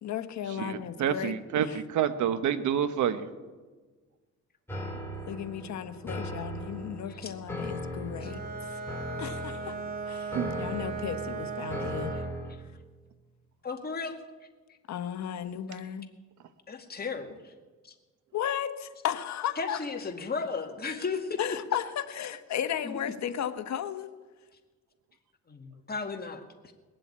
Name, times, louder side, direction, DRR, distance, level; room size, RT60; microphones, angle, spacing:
voice 1, 0.0-1.4 1.6-1.8 5.3-8.4 8.7-8.8 9.2-9.8 10.1-12.1 14.9-16.1 18.3-19.8 21.4-24.1, left 9 dB, 65° left, 10 dB, 1.1 m, -34 dB
voice 2, 0.6-3.3 10.3-10.5, right 9 dB, 75° right, 12 dB, 1.1 m, -28 dB
sound 1, 4.7-12.5, left 1 dB, 10° left, 3.6 m, -38 dB
Bowed string instrument, 8.2-12.4, right 5 dB, 30° right, 2.8 m, -37 dB
voice 3, 13.6-14.2 16.7-17.5 17.8-17.9 19.6-21.4 21.7-21.8 22.8-23.0 25.5-26.7, left 4 dB, 30° left, 4 dB, 2.1 m, -35 dB
20.5 x 7.8 x 8.6 m, 1.3 s
cardioid pair, 90°, 30 cm